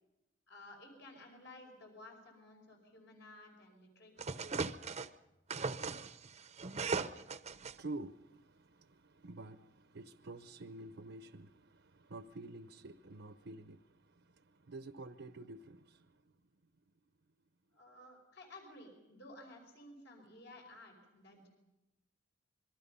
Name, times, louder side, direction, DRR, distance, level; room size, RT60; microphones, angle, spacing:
voice 1, 0.5-4.4 17.7-21.5, left 1 dB, 60° left, 5.4 m, -55 dB
sound 1, 4.2-5.1 5.5-7.7, right 4 dB, 35° right, 0.8 m, -38 dB
voice 2, 7.5-16.3, right 2 dB, 70° right, 0.8 m, -49 dB
26.5 x 22.5 x 5.6 m
head